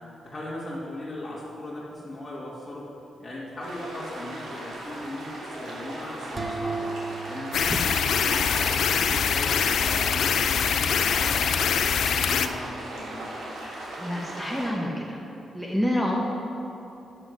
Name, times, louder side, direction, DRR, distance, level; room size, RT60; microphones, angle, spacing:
voice 1, 0.2-2.9 3.2-6.8 7.3-13.3, left 1 dB, 25° left, -9 dB, 2.2 m, -38 dB
sound 1, 3.6-14.7, right 1 dB, 80° right, 2.8 m, -38 dB
sound 2, 6.4-9.1, right 3 dB, 35° right, 0.9 m, -35 dB
sound 3, 7.5-12.5, left 7 dB, 75° left, 0.5 m, -24 dB
voice 2, 7.6-8.0 14.0-15.2 15.5-16.1, equal, ahead, -2 dB, 1.3 m, -28 dB
10.5 x 6.6 x 6.4 m, 2.9 s
cardioid pair, 75°, 0 cm